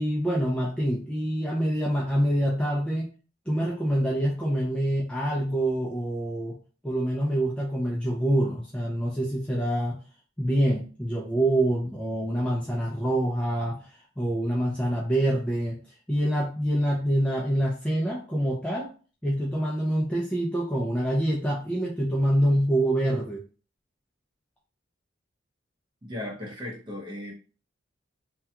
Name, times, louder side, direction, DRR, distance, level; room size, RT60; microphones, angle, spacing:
voice 1, 0.0-3.1 3.5-6.6 6.8-10.0 10.4-15.8 16.1-18.9 19.2-23.4, right 1 dB, 5° left, -3 dB, 0.3 m, -26 dB
voice 2, 26.0-27.3, left 1 dB, 25° right, -3 dB, 0.8 m, -36 dB
2.3 x 2.2 x 2.8 m, 0.37 s
head